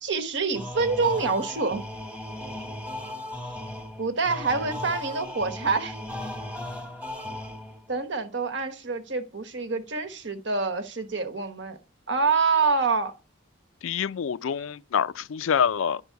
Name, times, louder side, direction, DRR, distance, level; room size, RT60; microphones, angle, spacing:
voice 1, 0.0-1.8 4.0-6.0 7.9-11.8 12.1-13.1, right 4 dB, 65° right, 1.1 m, -26 dB
sound 1, 0.5-7.9, left 1 dB, 5° right, 1.0 m, -37 dB
voice 2, 13.8-16.0, left 7 dB, 85° left, 0.4 m, -26 dB
10.0 x 5.4 x 4.6 m
head